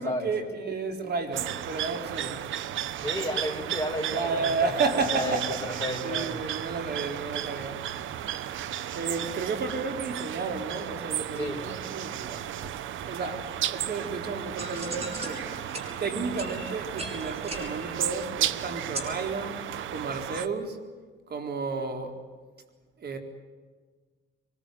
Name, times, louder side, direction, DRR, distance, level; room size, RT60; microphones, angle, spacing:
voice 1, 0.0-2.5 4.1-7.8 8.9-12.5 13.1-20.8 21.3-22.2 23.0-23.2, right 4 dB, 55° right, 5 dB, 4.1 m, -32 dB
sound 1, 1.3-20.5, right 11 dB, 80° right, 1.1 m, -34 dB
voice 2, 3.0-4.7 5.1-6.3 11.4-11.6, left 1 dB, 15° left, -2 dB, 5.4 m, -32 dB
sound 2, 14.0-19.3, right 1 dB, 30° right, 6.1 m, -40 dB
24.0 x 21.5 x 9.3 m, 1.4 s
cardioid pair, 90°, 20 cm